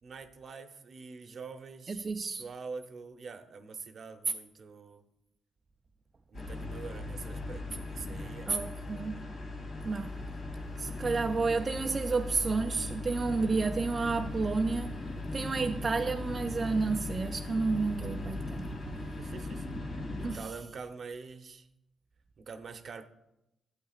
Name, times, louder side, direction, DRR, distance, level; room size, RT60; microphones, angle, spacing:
voice 1, 0.0-5.0 6.3-8.5 19.2-21.7 22.4-23.0, right 5 dB, 55° right, 0.8 m, -45 dB
voice 2, 1.9-2.4 8.5-9.3 9.8-10.2 10.8-15.0 15.3-18.7 20.2-20.5, right 4 dB, 40° right, 0.4 m, -31 dB
sound 1, 6.3-20.4, left 2 dB, 65° left, 2.6 m, -38 dB
12.0 x 8.1 x 2.4 m
supercardioid pair, 65°, 0 cm